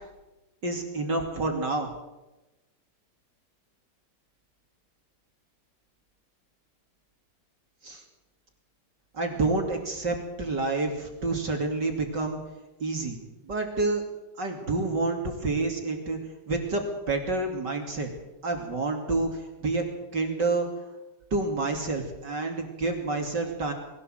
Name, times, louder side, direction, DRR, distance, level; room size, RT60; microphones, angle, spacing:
voice 1, 0.6-1.9 7.8-8.0 9.1-12.4 12.8-13.2 13.4-14.0 14.4-16.2 16.5-18.1 18.4-19.8 20.1-20.7 21.3-23.7, right 3 dB, 30° right, 3 dB, 2.3 m, -28 dB
22.5 x 16.5 x 7.9 m, 1.0 s
omnidirectional pair, 5.2 m